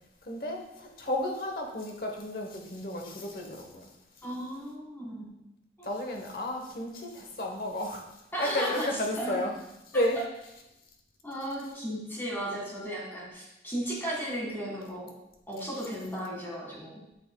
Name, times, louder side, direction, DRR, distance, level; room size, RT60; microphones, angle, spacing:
voice 1, 0.2-3.9 5.8-8.1 8.4-9.5 9.9-10.2, left 1 dB, 55° left, 2 dB, 1.0 m, -32 dB
voice 2, 4.2-5.3 5.8-5.9 8.3-8.9 9.1-9.4 11.2-15.1 15.5-17.0, equal, 15° left, -4 dB, 1.9 m, -35 dB
8.3 x 6.0 x 2.3 m, 0.89 s
head